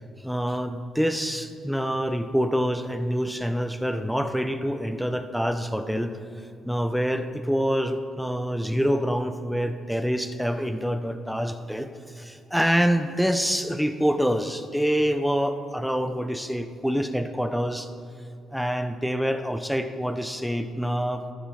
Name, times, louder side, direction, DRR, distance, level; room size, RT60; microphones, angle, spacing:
voice 1, 0.2-17.9 18.5-21.2, equal, ahead, 9 dB, 0.9 m, -26 dB
13.5 x 12.0 x 5.0 m, 2.7 s
cardioid pair, 90°, 0 cm